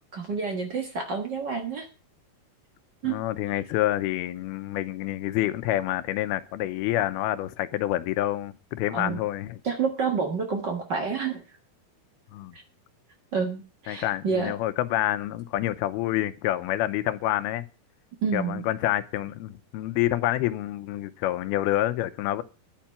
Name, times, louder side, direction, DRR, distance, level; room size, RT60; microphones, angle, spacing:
voice 1, 0.0-1.9 3.0-3.2 8.9-9.2 9.6-11.4 12.5-12.6 13.3-14.5 18.2-18.6, right 5 dB, 80° right, 0.9 m, -29 dB
voice 2, 3.0-9.6 12.3-12.5 13.9-17.7 18.3-22.4, left 14 dB, 85° left, 2.7 m, -27 dB
11.0 x 5.9 x 8.7 m
omnidirectional pair, 4.4 m